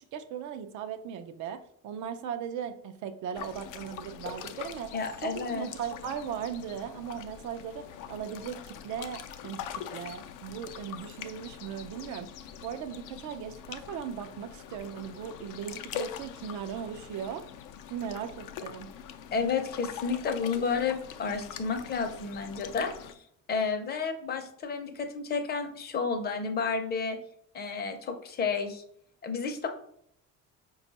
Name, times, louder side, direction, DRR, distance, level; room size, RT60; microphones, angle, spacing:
voice 1, 0.1-4.9 5.2-12.3 12.6-17.4 17.9-18.9, right 8 dB, 70° right, 8 dB, 0.5 m, -38 dB
sound 1, 3.3-23.1, left 9 dB, 80° left, 0.5 m, -43 dB
voice 2, 4.9-5.7 19.3-22.9 23.5-27.2 27.5-28.8 29.2-29.7, left 5 dB, 30° left, 6 dB, 0.6 m, -31 dB
5.1 x 2.3 x 4.0 m, 0.68 s
cardioid pair, 155°, 31 cm